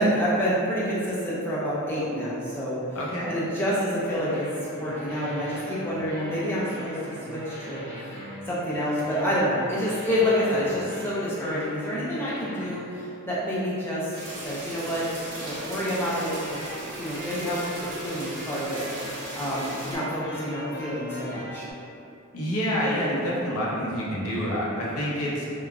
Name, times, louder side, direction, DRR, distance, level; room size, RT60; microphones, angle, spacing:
voice 1, 0.0-2.8 3.3-4.5 4.8-8.2 8.5-14.1 14.4-16.6 17.0-21.7, equal, 10° left, -9 dB, 0.4 m, -28 dB
voice 2, 2.9-3.4 22.3-25.5, equal, 85° left, -5 dB, 0.6 m, -27 dB
sound 1, 3.9-13.4 15.0-21.7, left 1 dB, 50° left, 0.7 m, -41 dB
sound 2, 14.1-20.0, right 1 dB, 85° right, 0.8 m, -38 dB
3.2 x 2.2 x 2.4 m, 2.6 s
head